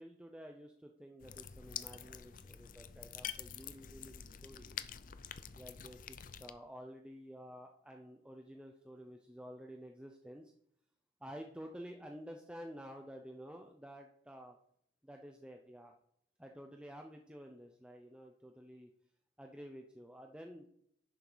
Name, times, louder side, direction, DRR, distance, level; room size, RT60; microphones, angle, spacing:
voice 1, 0.0-4.7 5.5-10.5 11.2-14.6 15.0-15.9 16.4-18.9 19.4-20.7, equal, 5° right, 3 dB, 0.6 m, -51 dB
sound 1, 1.2-6.5, left 9 dB, 50° left, 0.5 m, -47 dB
11.0 x 6.9 x 4.0 m, 0.70 s
head